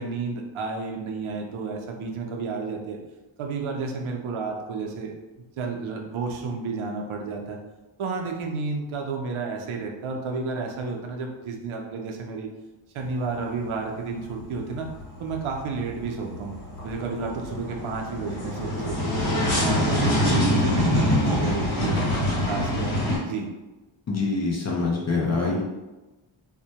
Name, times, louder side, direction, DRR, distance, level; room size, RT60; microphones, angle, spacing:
voice 1, 0.0-3.0 3.4-5.1 5.6-7.6 8.0-12.5 12.9-14.9 15.2-19.1 19.6-22.1 22.5-23.0 23.3-23.5, right 4 dB, 80° right, 2 dB, 0.5 m, -31 dB
sound 1, 13.0-13.7 14.0-23.2, left 1 dB, 85° left, 1.1 m, -25 dB
voice 2, 24.1-25.6, left 3 dB, 35° left, -3 dB, 0.4 m, -25 dB
2.1 x 2.1 x 2.8 m, 1.1 s
wide cardioid pair, 155°, 49 cm